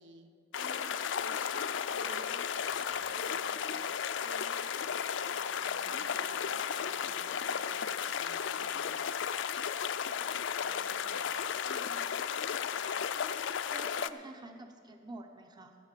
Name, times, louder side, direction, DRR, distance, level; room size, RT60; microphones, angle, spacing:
voice 1, 0.0-9.1 10.6-11.4 12.6-12.7, right 2 dB, 70° right, 6 dB, 1.1 m, -53 dB
sound 1, 0.5-14.1, left 7 dB, 70° left, 0.4 m, -34 dB
voice 2, 11.6-12.2 13.7-15.8, right 2 dB, 25° right, 5 dB, 0.8 m, -48 dB
15.0 x 7.4 x 6.7 m, 2.4 s
head